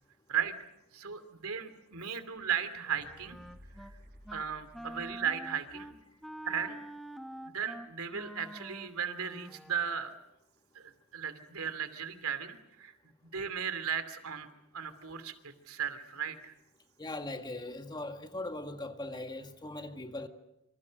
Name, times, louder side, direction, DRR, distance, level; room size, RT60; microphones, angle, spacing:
voice 1, 0.9-3.4 4.3-5.9 6.4-6.8 7.4-10.2 10.7-12.9 13.3-14.5 14.7-16.5, right 7 dB, 80° right, 2.8 m, -36 dB
Wind instrument woodwind instrument, 2.8-3.9 4.2-4.5 4.7-10.0, right 1 dB, ahead, 0.9 m, -46 dB
sound 1, 2.9-5.6 5.9-6.0, equal, 45° right, 5.3 m, -56 dB
voice 2, 17.0-20.3, left 2 dB, 20° left, 1.8 m, -40 dB
28.0 x 26.0 x 6.5 m
head